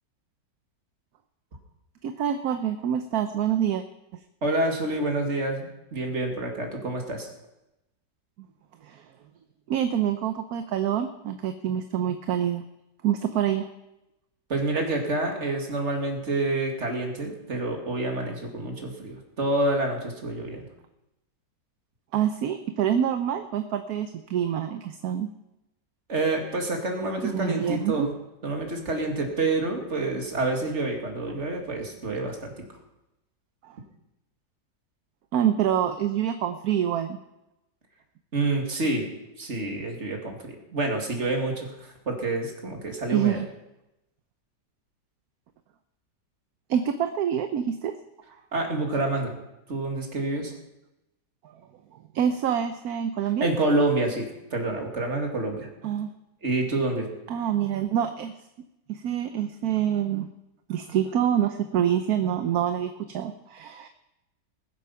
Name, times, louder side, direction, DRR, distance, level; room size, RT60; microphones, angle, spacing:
voice 1, 2.0-3.8 8.8-9.0 9.7-12.6 13.0-13.7 22.1-25.3 27.2-28.1 33.6-33.8 35.3-37.2 43.1-43.5 46.7-47.9 52.1-53.5 55.8-56.1 57.3-58.3 58.9-60.3 60.7-63.9, right 9 dB, 65° right, 8 dB, 1.1 m, -26 dB
voice 2, 4.4-5.7 5.9-7.3 14.5-20.6 26.1-28.1 28.4-32.5 38.3-39.1 39.4-43.4 48.5-49.3 49.7-50.5 53.4-55.7 56.4-57.1, right 2 dB, 40° right, 2 dB, 2.5 m, -28 dB
20.0 x 8.3 x 5.7 m, 0.92 s
omnidirectional pair, 1.9 m